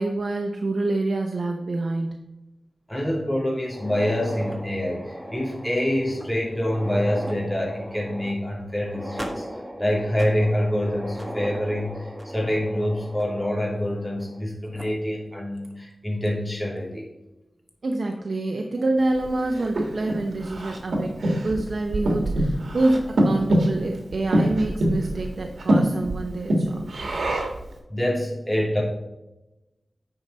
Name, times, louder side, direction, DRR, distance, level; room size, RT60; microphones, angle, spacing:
voice 1, 0.0-2.3 17.8-26.9, right 2 dB, 65° right, 3 dB, 0.8 m, -26 dB
voice 2, 2.9-9.4 9.8-17.1 27.9-28.8, left 1 dB, 10° left, -3 dB, 3.0 m, -26 dB
sound 1, 3.6-14.4 14.7-14.8 15.6-15.7 16.3-16.4 17.7-18.0, equal, 10° right, 1.3 m, -37 dB
Breathing, 19.2-27.7, right 1 dB, 90° right, 1.6 m, -25 dB
9.7 x 5.5 x 4.1 m, 0.98 s
wide cardioid pair, 100°, 0 cm